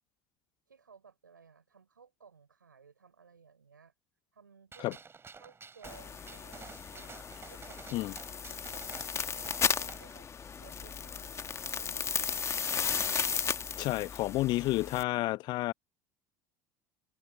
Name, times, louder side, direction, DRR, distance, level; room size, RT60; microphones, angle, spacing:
voice 1, 0.7-3.9 4.3-5.0 5.4-7.1 7.5-10.3 10.6-13.0, right 6 dB, 85° right, 5.5 m, -58 dB
Gunshot gunfire, 4.7-10.2, right 5 dB, 25° right, 3.1 m, -51 dB
sound 1, 5.8-15.0, left 6 dB, 25° left, 1.5 m, -35 dB
voice 2, 13.8-15.7, left 18 dB, 45° left, 0.4 m, -30 dB
figure-of-eight pair, 70°, 10 cm